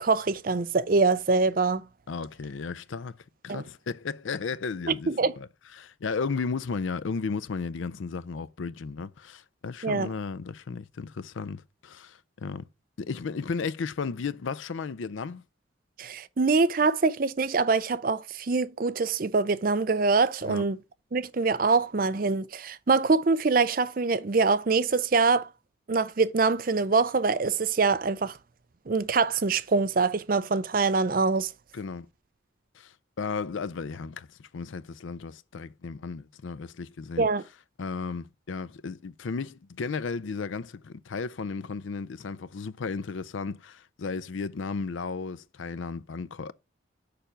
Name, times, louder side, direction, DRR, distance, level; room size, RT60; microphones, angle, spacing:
voice 1, 0.0-1.8 3.5-3.6 4.9-5.3 9.8-10.1 16.0-20.8 21.1-25.5 25.9-28.3 28.9-31.5 37.2-37.4, right 4 dB, 45° right, 0.5 m, -24 dB
voice 2, 2.1-3.2 3.4-5.1 5.4-5.5 5.7-12.7 13.0-15.4 20.4-20.7 31.7-32.1 32.7-37.3 37.8-46.5, left 5 dB, 85° left, 0.5 m, -34 dB
6.8 x 5.1 x 5.6 m
head